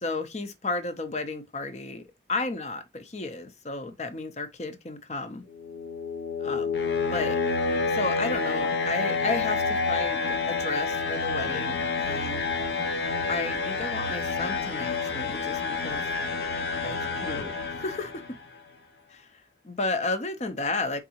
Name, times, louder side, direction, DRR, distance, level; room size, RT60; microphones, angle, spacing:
voice 1, 0.0-2.0 2.3-5.4 6.4-6.7 7.1-7.4 7.9-12.5 13.3-16.1 16.8-17.0 17.2-18.2 19.1-21.0, left 3 dB, 40° left, 0.6 m, -33 dB
sound 1, 5.5-18.4, left 4 dB, 70° left, 0.8 m, -29 dB
4.0 x 3.6 x 2.8 m
head